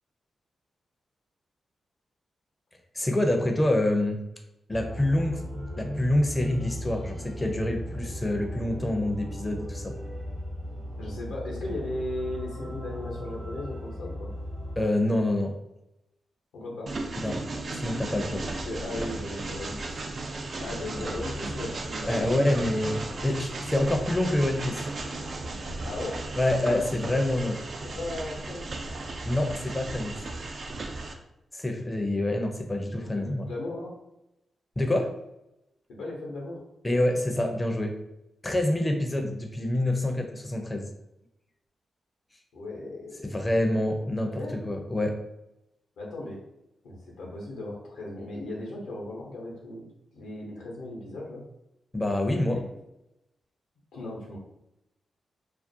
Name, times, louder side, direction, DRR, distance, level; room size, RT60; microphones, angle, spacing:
voice 1, 2.9-4.2 4.7-10.0 14.8-15.5 17.2-17.4 17.7-18.5 22.1-24.8 26.4-27.5 29.3-30.2 31.5-33.5 34.8-35.1 36.8-38.0 38.4-40.9 43.2-45.2 51.9-52.6, left 1 dB, 20° left, 3 dB, 0.5 m, -27 dB
sound 1, 4.7-14.8, equal, 40° right, 0.7 m, -37 dB
voice 2, 11.0-14.3 16.5-16.9 18.6-20.0 20.6-22.6 23.1-23.4 25.8-26.2 26.6-26.8 27.4-27.5 27.8-28.7 32.9-33.9 36.0-36.6 42.5-43.3 44.2-44.6 46.0-46.4 46.8-49.8 50.1-51.4 52.5-52.8 53.9-54.4, left 2 dB, 85° left, -3 dB, 0.7 m, -36 dB
Train, 16.9-31.1, right 2 dB, 60° right, 0.3 m, -35 dB
2.4 x 2.1 x 2.6 m, 0.87 s
supercardioid pair, 45°, 0 cm